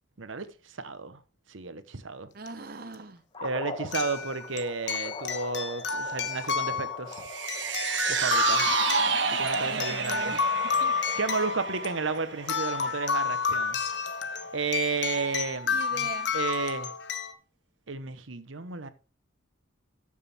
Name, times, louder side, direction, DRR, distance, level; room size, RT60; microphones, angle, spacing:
voice 1, 0.2-1.2 1.5-2.3 3.4-7.2 8.1-8.8 9.3-10.3 11.2-13.8 14.5-16.9 17.9-18.9, right 4 dB, 85° right, 1.0 m, -33 dB
voice 2, 2.3-3.2 9.6-11.0 15.7-16.3, right 3 dB, 50° right, 0.8 m, -41 dB
sound 1, 2.5-2.6 3.9-17.3, left 5 dB, 60° left, 1.1 m, -30 dB
sound 2, 3.3-15.6, left 2 dB, 25° left, 1.3 m, -45 dB
sound 3, 7.2-13.6 14.0-14.1, right 6 dB, 70° right, 1.3 m, -30 dB
13.0 x 6.7 x 3.4 m
head